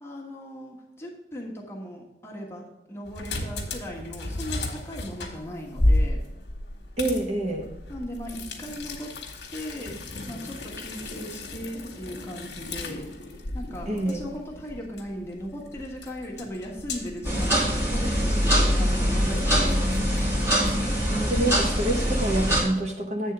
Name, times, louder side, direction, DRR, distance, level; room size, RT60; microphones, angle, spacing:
voice 1, 0.0-2.6 2.9-6.2 7.9-9.1 9.5-10.0 10.3-13.1 13.5-20.3, equal, 15° left, -3 dB, 1.4 m, -38 dB
sound 1, 3.1-20.9, left 1 dB, 70° left, 1.4 m, -33 dB
voice 2, 7.0-7.7 13.9-14.2 21.1-23.3, right 1 dB, 40° right, 1 dB, 0.9 m, -27 dB
sound 2, 17.2-22.6, equal, 15° right, 2.0 m, -23 dB
8.4 x 3.6 x 6.7 m, 0.94 s
head